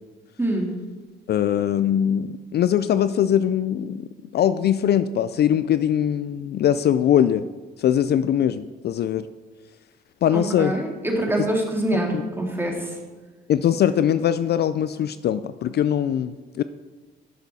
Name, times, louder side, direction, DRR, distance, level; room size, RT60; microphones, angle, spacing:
voice 1, 0.4-0.7 10.3-13.0, right 1 dB, 10° right, 0 dB, 2.2 m, -25 dB
voice 2, 1.3-7.5 7.8-9.3 10.2-10.7 13.5-16.6, left 10 dB, 55° left, 13 dB, 0.4 m, -21 dB
12.0 x 6.7 x 4.1 m, 1.3 s
cardioid pair, 90°, 20 cm